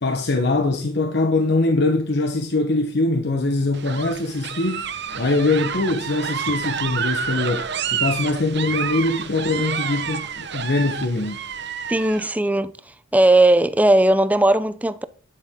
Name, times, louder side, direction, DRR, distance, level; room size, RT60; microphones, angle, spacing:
voice 1, 0.0-4.9 5.2-11.4, left 2 dB, 60° left, 1.0 m, -22 dB
sound 1, 3.7-12.3, right 7 dB, 65° right, 1.0 m, -29 dB
voice 2, 11.9-12.7 13.1-15.1, right 1 dB, 10° right, 0.5 m, -17 dB
10.0 x 9.0 x 3.7 m
head